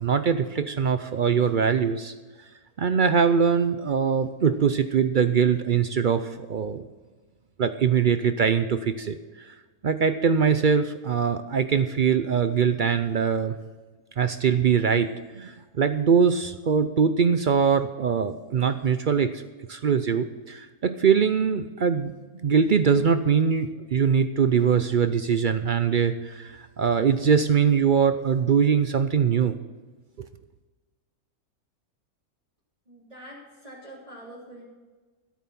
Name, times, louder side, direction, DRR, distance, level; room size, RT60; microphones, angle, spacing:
voice 1, 0.0-2.1 2.8-6.8 7.6-9.2 9.5-9.6 9.8-13.6 14.2-19.4 19.7-22.1 22.4-29.6, right 6 dB, 60° right, 10 dB, 0.5 m, -22 dB
voice 2, 32.9-34.6, right 1 dB, 25° right, -8 dB, 3.5 m, -45 dB
13.5 x 8.4 x 5.8 m, 1.3 s
omnidirectional pair, 1.6 m